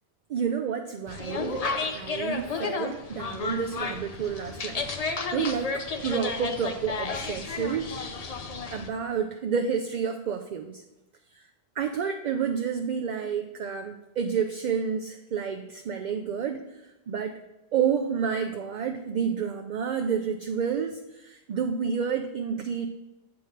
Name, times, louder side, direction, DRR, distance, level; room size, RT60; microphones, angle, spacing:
voice 1, 0.3-4.8 5.3-7.9 8.7-10.8 11.8-16.6 17.1-17.3 17.7-22.9, right 7 dB, 55° right, 4 dB, 0.5 m, -29 dB
sound 1, 1.1-8.9, left 4 dB, 45° left, 0.6 m, -32 dB
8.7 x 3.5 x 6.4 m, 1.0 s
omnidirectional pair, 1.1 m